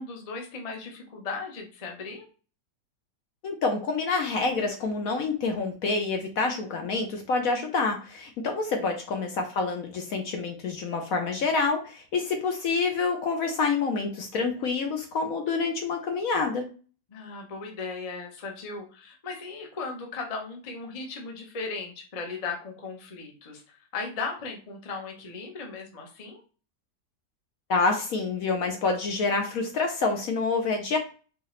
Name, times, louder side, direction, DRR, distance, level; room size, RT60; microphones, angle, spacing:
voice 1, 0.0-2.3 8.8-8.9 17.1-23.6 23.9-26.4, left 4 dB, 30° left, 1 dB, 0.7 m, -37 dB
voice 2, 3.4-16.7 27.7-31.0, left 4 dB, 65° left, 4 dB, 1.0 m, -27 dB
4.7 x 2.8 x 3.1 m, 0.37 s
omnidirectional pair, 1.8 m